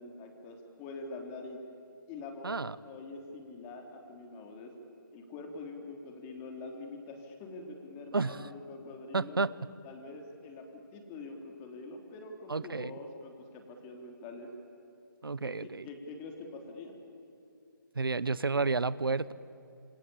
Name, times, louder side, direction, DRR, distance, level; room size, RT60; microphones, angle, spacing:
voice 1, 0.0-1.6 2.1-4.7 5.1-9.4 9.8-14.5 15.4-16.9, left 3 dB, 20° left, 2 dB, 3.5 m, -45 dB
voice 2, 8.1-8.5 9.1-9.5 12.5-12.9 15.2-15.9 18.0-19.3, right 4 dB, 85° right, 18 dB, 0.8 m, -31 dB
27.5 x 25.5 x 8.6 m, 2.7 s
figure-of-eight pair, 145°, 12 cm